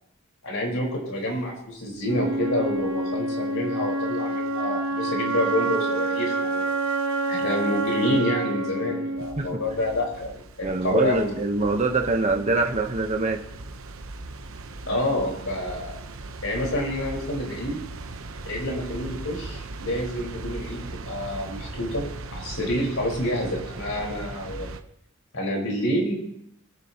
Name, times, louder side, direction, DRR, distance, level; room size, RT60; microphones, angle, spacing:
voice 1, 0.4-6.7 7.3-11.3 14.9-16.0 16.4-17.8 18.4-22.0 22.3-24.7 25.3-26.1, left 1 dB, 75° left, -1 dB, 4.7 m, -28 dB
Wind instrument woodwind instrument, 2.0-10.1, right 2 dB, 90° right, 1.1 m, -28 dB
sound 1, 9.2-24.8, right 2 dB, 75° right, 1.0 m, -39 dB
voice 2, 10.6-13.4, right 3 dB, 35° right, 3 dB, 1.0 m, -24 dB
25.0 x 10.0 x 3.0 m, 0.75 s
head